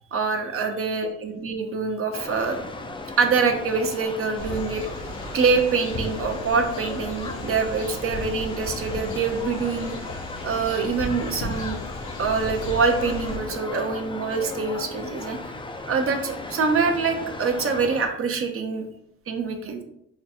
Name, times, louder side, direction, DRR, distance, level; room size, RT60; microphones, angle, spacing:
voice 1, 0.1-2.6 3.2-4.9 5.3-11.8 12.2-15.4 15.9-18.9 19.3-19.8, right 4 dB, 45° right, 4 dB, 0.7 m, -25 dB
sound 1, 2.1-18.1, left 2 dB, 15° left, 0.4 m, -36 dB
sound 2, 4.4-13.4, left 1 dB, 80° left, 1.0 m, -36 dB
3.9 x 2.3 x 4.2 m, 0.77 s
cardioid pair, 90°, 30 cm